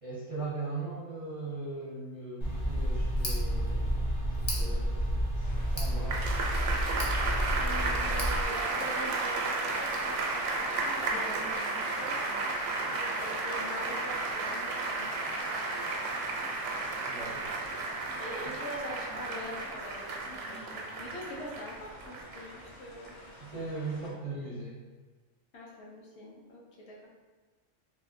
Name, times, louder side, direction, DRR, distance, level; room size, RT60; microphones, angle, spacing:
voice 1, 0.0-4.0 4.4-6.2 17.1-17.5 23.5-24.8, right 3 dB, 40° right, -9 dB, 0.5 m, -39 dB
Tick, 2.4-8.4, equal, 35° left, 0.5 m, -30 dB
Mountain Stream, 5.4-24.1, left 1 dB, 90° left, 1.2 m, -52 dB
applauses theatre woo woohoo hooligan, 6.1-22.6 23.1-23.2, right 3 dB, 85° right, 1.0 m, -33 dB
voice 2, 7.5-12.1 12.9-15.9 18.2-23.2 25.5-27.1, equal, 65° left, -3 dB, 0.9 m, -44 dB
3.4 x 2.7 x 2.5 m, 1.4 s
omnidirectional pair, 1.3 m